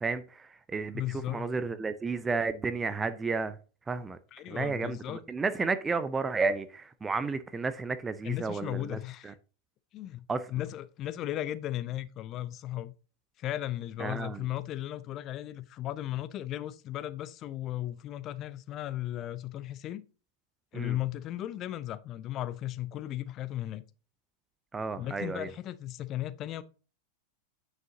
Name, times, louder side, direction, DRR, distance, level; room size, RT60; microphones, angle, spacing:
voice 1, 0.0-3.6 3.9-4.2 4.5-9.0 9.2-9.3 10.3-10.5 14.0-14.4 20.7-21.0 24.7-25.5, right 4 dB, 15° right, 0.6 m, -32 dB
voice 2, 0.9-1.5 4.3-5.2 8.2-9.4 9.9-10.3 10.5-12.9 13.4-20.0 20.7-23.8 25.0-26.6, left 13 dB, 35° left, 0.5 m, -36 dB
8.9 x 6.5 x 2.7 m
figure-of-eight pair, 90°, 0 cm